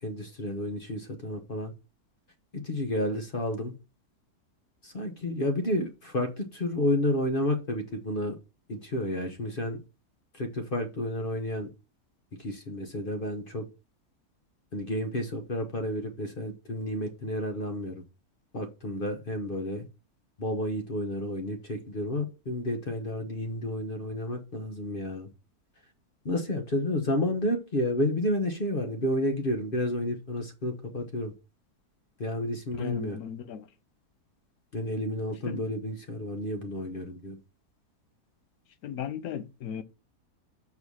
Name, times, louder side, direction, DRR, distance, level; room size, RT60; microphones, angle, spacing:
voice 1, 0.0-1.7 2.6-3.7 4.8-8.4 8.7-9.8 10.3-11.7 12.4-13.7 14.7-18.0 18.5-19.9 20.4-25.3 26.2-31.3 32.2-33.2 34.7-37.4, left 1 dB, 40° left, 1.1 m, -31 dB
voice 2, 32.8-33.7 35.5-35.7 38.8-39.8, left 9 dB, 70° left, 1.2 m, -36 dB
6.4 x 4.7 x 5.4 m
omnidirectional pair, 1.6 m